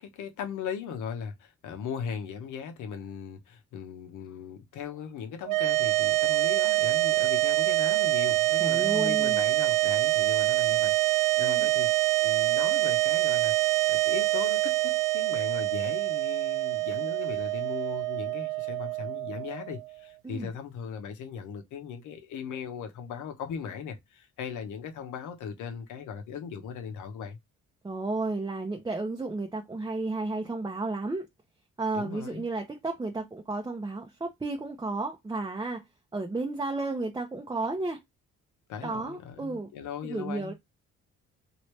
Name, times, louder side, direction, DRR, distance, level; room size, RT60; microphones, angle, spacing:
voice 1, 0.0-27.4 31.9-32.4 38.7-40.5, left 7 dB, 80° left, 0.9 m, -38 dB
sound 1, 5.4-19.9, right 19 dB, 90° right, 0.5 m, -25 dB
voice 2, 8.6-9.4 11.4-11.7 20.2-20.5 27.8-31.3 31.8-35.8 36.1-38.0 38.8-39.7 40.0-40.5, right 3 dB, 15° right, 0.6 m, -32 dB
3.1 x 2.8 x 3.1 m
cardioid pair, 90°, 30 cm